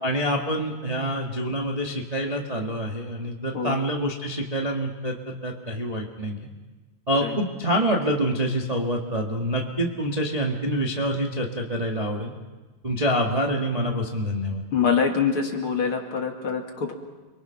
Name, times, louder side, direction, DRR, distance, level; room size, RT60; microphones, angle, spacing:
voice 1, 0.0-6.5 7.1-12.3 12.8-14.6, equal, 30° right, -1 dB, 0.6 m, -26 dB
voice 2, 14.7-16.9, left 6 dB, 40° left, 1 dB, 2.6 m, -25 dB
30.0 x 23.0 x 5.9 m, 1.3 s
omnidirectional pair, 4.1 m